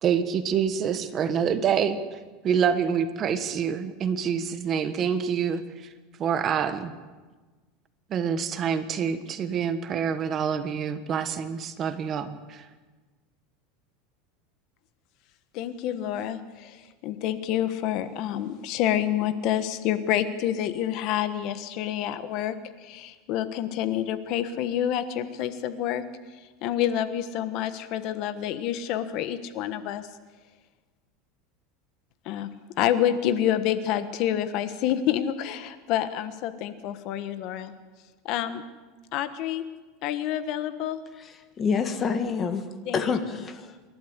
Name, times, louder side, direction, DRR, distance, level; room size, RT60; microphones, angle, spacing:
voice 1, 0.0-2.2 2.4-5.6 6.2-6.9 8.1-12.6, right 7 dB, 30° right, 10 dB, 1.3 m, -26 dB
voice 2, 15.5-22.5 22.8-26.0 26.6-30.1 32.2-32.5 32.8-37.7 38.2-38.6 39.1-39.6 40.0-41.0 42.9-43.0, left 11 dB, 50° left, 11 dB, 1.3 m, -28 dB
voice 3, 41.2-42.6 42.9-43.8, left 5 dB, 25° left, 8 dB, 1.7 m, -27 dB
27.5 x 12.0 x 8.1 m, 1.3 s
supercardioid pair, 150°, 0 cm